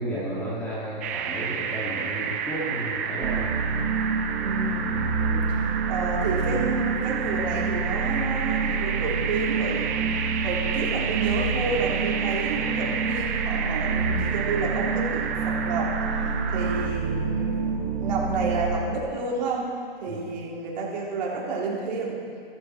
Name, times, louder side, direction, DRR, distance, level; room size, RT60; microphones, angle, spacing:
voice 1, 0.0-3.5 20.1-20.2, right 1 dB, 5° left, -8 dB, 2.1 m, -32 dB
sound 1, 1.0-16.9, right 7 dB, 15° right, 0.4 m, -31 dB
sound 2, 3.2-18.8, right 5 dB, 30° right, 1.4 m, -28 dB
voice 2, 4.4-10.1 10.4-15.9 16.5-19.7 20.0-22.2, right 3 dB, 50° right, -4 dB, 3.9 m, -30 dB
15.5 x 13.0 x 4.5 m, 2.2 s
hypercardioid pair, 150°, 29 cm